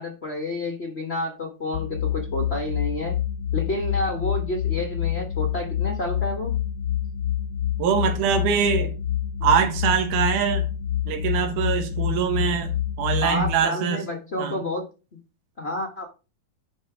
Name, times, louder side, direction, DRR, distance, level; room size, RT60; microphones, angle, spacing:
voice 1, 0.0-3.2 3.5-6.6 13.2-14.9 15.6-16.0, left 1 dB, 85° left, 0.5 m, -29 dB
sound 1, 1.7-13.5, left 10 dB, 70° left, 1.4 m, -27 dB
voice 2, 7.8-8.9 9.4-10.7 11.1-14.0 14.4-14.6, right 7 dB, 75° right, 2.9 m, -23 dB
10.5 x 4.3 x 4.9 m
omnidirectional pair, 3.7 m